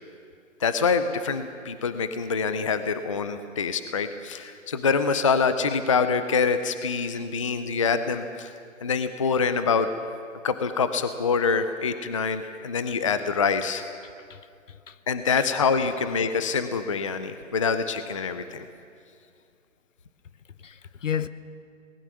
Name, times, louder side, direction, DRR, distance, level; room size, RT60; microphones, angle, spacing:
voice 1, 0.6-8.5 8.8-9.9 10.4-13.8 15.1-18.6, left 5 dB, 25° left, 0.5 m, -25 dB
voice 2, 20.6-21.3, left 8 dB, 70° left, 1.0 m, -32 dB
22.0 x 19.5 x 6.2 m
hypercardioid pair, 155°, 39 cm